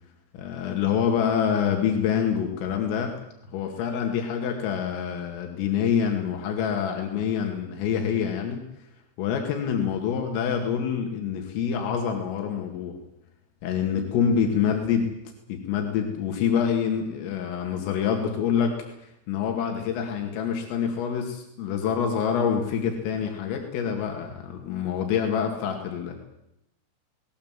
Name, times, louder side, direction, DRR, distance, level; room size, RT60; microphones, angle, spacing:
voice 1, 0.3-3.1 3.5-8.6 9.2-13.0 13.6-15.1 15.5-18.8 19.0-26.2, left 7 dB, 90° left, 2 dB, 4.8 m, -26 dB
22.5 x 19.5 x 7.5 m, 0.81 s
omnidirectional pair, 5.7 m